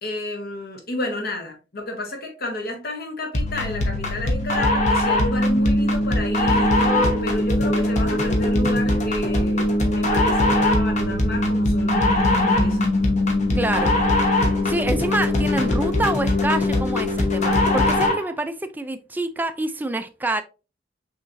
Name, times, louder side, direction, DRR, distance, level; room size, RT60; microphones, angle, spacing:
voice 1, 0.0-12.9, left 1 dB, 55° left, 1.3 m, -31 dB
sound 1, 3.3-18.3, left 1 dB, 40° left, 1.0 m, -21 dB
voice 2, 13.5-14.0 14.7-20.4, right 2 dB, 10° right, 0.3 m, -26 dB
6.0 x 3.0 x 2.6 m
head